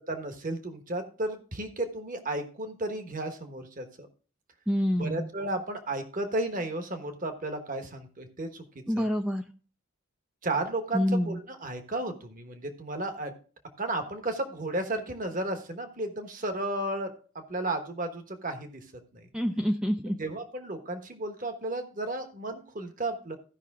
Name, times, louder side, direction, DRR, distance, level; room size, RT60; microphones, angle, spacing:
voice 1, 0.1-4.1 5.0-8.6 8.9-9.0 10.4-13.3 13.8-17.1 17.5-18.8 20.2-23.4, right 2 dB, 40° right, 7 dB, 1.2 m, -33 dB
voice 2, 4.7-5.3 8.9-9.4 10.9-11.4 19.3-20.2, equal, 5° right, 5 dB, 0.4 m, -27 dB
15.0 x 5.6 x 3.6 m, 0.37 s
head